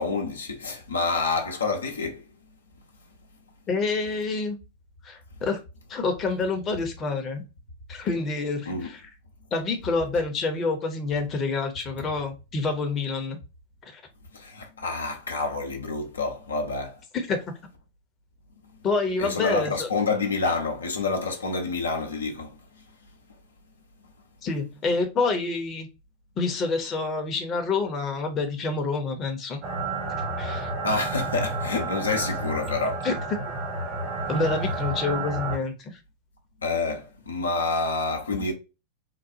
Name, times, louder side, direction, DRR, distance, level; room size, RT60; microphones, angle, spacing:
voice 1, 0.0-2.2 8.7-8.9 14.3-16.9 19.2-22.5 30.8-33.0 36.6-38.5, left 3 dB, 75° left, 0.7 m, -28 dB
voice 2, 3.7-4.6 5.0-5.6 5.9-7.4 7.9-9.1 9.5-13.4 13.8-14.0 17.3-17.6 18.8-19.9 24.4-25.9 26.4-29.6 30.4-30.7 33.0-33.1 34.3-36.0, left 3 dB, 25° left, 0.8 m, -27 dB
sound 1, 29.6-35.5, right 2 dB, 40° right, 1.1 m, -30 dB
3.8 x 2.3 x 2.6 m
figure-of-eight pair, 90°, 0 cm